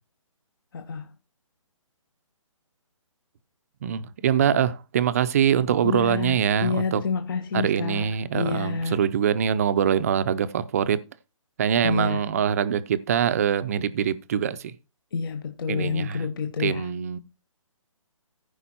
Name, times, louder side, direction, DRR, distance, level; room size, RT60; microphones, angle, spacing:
voice 1, 0.7-1.1 5.8-9.0 11.8-12.2 15.1-16.9, left 5 dB, 40° left, 0.9 m, -29 dB
voice 2, 3.8-7.0 7.5-11.0 11.6-14.7 15.7-16.2 16.6-17.2, right 8 dB, 25° right, 0.6 m, -24 dB
14.5 x 5.1 x 4.3 m
hypercardioid pair, 165°, 17 cm